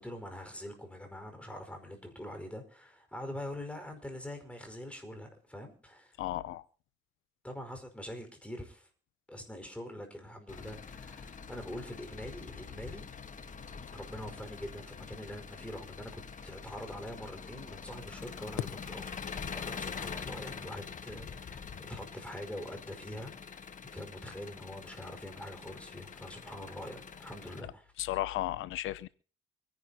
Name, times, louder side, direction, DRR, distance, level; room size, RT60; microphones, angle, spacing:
voice 1, 0.0-6.2 7.4-8.9 9.3-13.1 13.9-19.2 19.4-23.6 23.9-27.9, left 1 dB, 5° left, 4.9 m, -44 dB
voice 2, 6.2-6.6 28.0-29.1, left 14 dB, 85° left, 0.7 m, -34 dB
Engine, 10.5-27.6, left 6 dB, 40° left, 1.4 m, -45 dB
25.5 x 11.0 x 2.9 m
cardioid pair, 90°, 20 cm